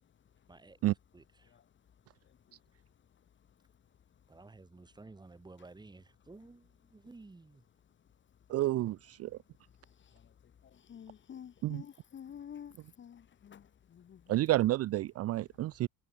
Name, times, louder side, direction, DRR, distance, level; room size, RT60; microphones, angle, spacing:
voice 1, 0.5-1.6 4.3-7.7, right 3 dB, 10° right, 5.0 m, -54 dB
voice 2, 8.5-9.4 11.6-11.8 14.3-15.9, right 15 dB, 40° right, 0.6 m, -30 dB
voice 3, 10.9-13.6 13.9-14.4, left 8 dB, 30° left, 2.4 m, -49 dB
cardioid pair, 160°, 38 cm